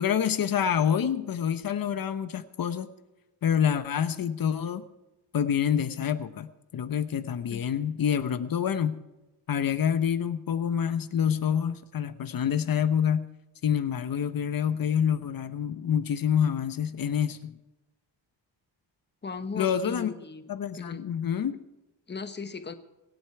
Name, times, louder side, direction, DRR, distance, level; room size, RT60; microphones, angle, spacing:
voice 1, 0.0-2.9 3.4-4.8 5.3-9.0 9.5-13.3 13.6-17.6 19.5-20.1 20.5-21.6, left 8 dB, 50° left, 11 dB, 0.9 m, -27 dB
voice 2, 19.2-20.4 20.7-21.1 22.1-22.7, left 4 dB, 25° left, 9 dB, 1.2 m, -37 dB
24.5 x 8.1 x 4.6 m, 1.0 s
cardioid pair, 125°, 44 cm